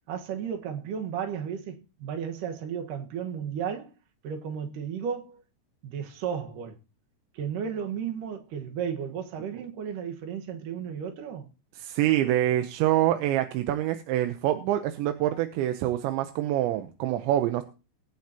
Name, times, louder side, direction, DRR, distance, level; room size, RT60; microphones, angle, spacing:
voice 1, 0.1-3.9 4.2-5.4 5.8-6.8 7.3-11.5, right 7 dB, 60° right, 2.6 m, -34 dB
voice 2, 11.8-17.6, right 13 dB, 85° right, 3.2 m, -26 dB
21.5 x 9.5 x 2.9 m
omnidirectional pair, 5.1 m